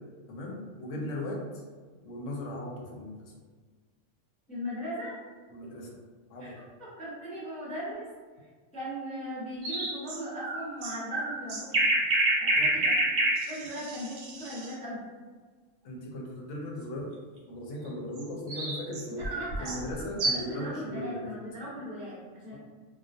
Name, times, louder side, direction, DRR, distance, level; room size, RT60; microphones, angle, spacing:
voice 1, 0.3-1.6 2.0-3.3 5.5-6.0 6.3-6.6 12.6-12.7 15.8-17.1 17.5-19.2 19.6-21.3, left 1 dB, 75° left, -1 dB, 0.9 m, -37 dB
voice 2, 4.5-5.2 6.4-8.1 8.4-11.8 12.4-15.0 19.1-19.8 20.2-22.6, equal, 10° left, -9 dB, 0.4 m, -39 dB
sound 1, 9.6-14.7 18.2-20.6, right 1 dB, 65° right, 0.8 m, -28 dB
2.3 x 2.2 x 2.5 m, 1.5 s
omnidirectional pair, 1.3 m